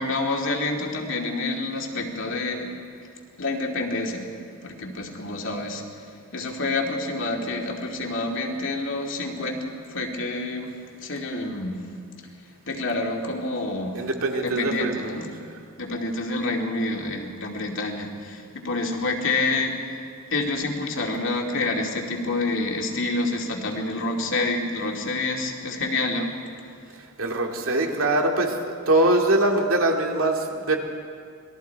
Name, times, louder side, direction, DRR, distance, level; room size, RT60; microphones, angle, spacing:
voice 1, 0.0-2.7 3.4-4.3 4.6-5.8 6.3-10.7 11.0-11.8 12.7-14.0 14.3-15.3 15.8-20.0 20.3-26.3, left 2 dB, 60° left, 1 dB, 2.6 m, -28 dB
voice 2, 13.9-15.5 27.0-30.8, right 1 dB, 70° right, 2 dB, 2.3 m, -23 dB
26.5 x 21.0 x 4.7 m, 2.2 s
head